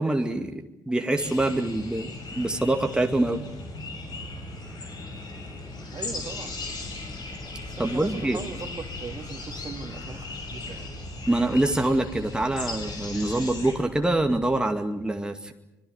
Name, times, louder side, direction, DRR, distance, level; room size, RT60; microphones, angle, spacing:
voice 1, 0.0-3.4 7.8-8.4 11.3-15.5, right 1 dB, 10° right, 4 dB, 2.2 m, -25 dB
sound 1, 1.2-13.7, left 3 dB, 50° left, 6.8 m, -37 dB
voice 2, 5.9-6.5 7.6-10.9, right 5 dB, 40° right, 6 dB, 2.6 m, -39 dB
sound 2, 6.1-14.5, left 2 dB, 15° left, 4.3 m, -46 dB
25.0 x 23.0 x 8.3 m, 0.92 s
hypercardioid pair, 50°, 9 cm